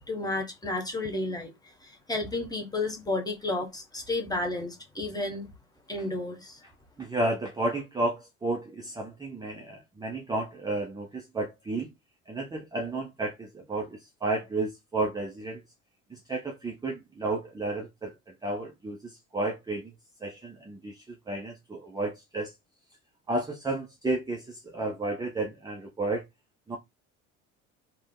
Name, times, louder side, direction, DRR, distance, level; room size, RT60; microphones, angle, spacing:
voice 1, 0.1-5.5 5.9-6.6, left 2 dB, 10° left, 1.0 m, -32 dB
voice 2, 7.0-11.9 12.3-15.6 16.1-19.9 20.2-22.5 23.3-26.2 26.7-26.8, right 2 dB, 10° right, 0.6 m, -32 dB
3.4 x 2.1 x 3.6 m
figure-of-eight pair, 65°, 43 cm